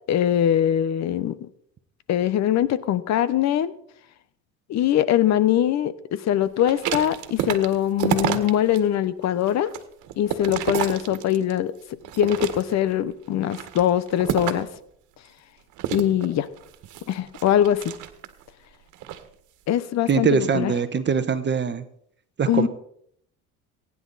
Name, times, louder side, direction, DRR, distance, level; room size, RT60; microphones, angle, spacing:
voice 1, 0.1-1.3 2.1-3.7 4.7-9.7 10.2-11.7 12.2-14.7 15.9-16.5 17.1-17.9 19.7-20.7 22.5-22.7, left 11 dB, 55° left, 16 dB, 1.1 m, -22 dB
sound 1, 6.6-8.8 9.2-11.6 12.0-12.9 13.4-14.8 15.8-18.4 18.9-19.2, right 11 dB, 65° right, 1.7 m, -29 dB
voice 2, 20.1-21.8 22.4-22.7, right 6 dB, 35° right, 11 dB, 1.2 m, -22 dB
22.5 x 10.0 x 4.2 m, 0.68 s
supercardioid pair, 100°, 32 cm